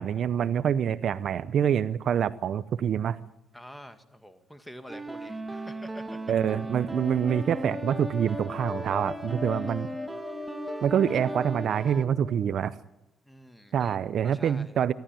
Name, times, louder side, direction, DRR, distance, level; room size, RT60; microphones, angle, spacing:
voice 1, 0.0-3.2 6.3-9.9 10.8-12.7 13.7-14.9, right 8 dB, 65° right, 16 dB, 0.7 m, -26 dB
voice 2, 3.5-6.2 9.5-9.7 13.2-14.8, equal, 5° left, 9 dB, 2.1 m, -47 dB
sound 1, 4.9-12.0, right 2 dB, 20° right, 1.7 m, -38 dB
sound 2, 5.8-12.6, left 4 dB, 35° left, 0.7 m, -40 dB
25.5 x 13.0 x 9.2 m, 0.90 s
cardioid pair, 90°, 0 cm